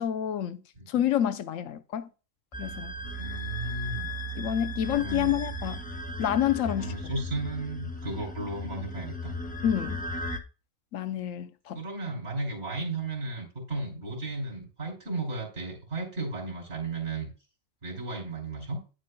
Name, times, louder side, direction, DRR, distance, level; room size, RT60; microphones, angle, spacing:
voice 1, 0.0-2.1 2.6-2.9 4.4-5.8 6.2-6.9 9.6-10.0 10.9-11.8, left 10 dB, 75° left, 1.1 m, -28 dB
sound 1, 2.5-10.4, equal, 10° left, 0.4 m, -36 dB
voice 2, 3.0-4.1 4.9-5.3 6.7-9.4 11.7-17.3 17.8-18.8, right 2 dB, 55° right, 3.5 m, -34 dB
10.0 x 7.6 x 2.2 m
omnidirectional pair, 1.4 m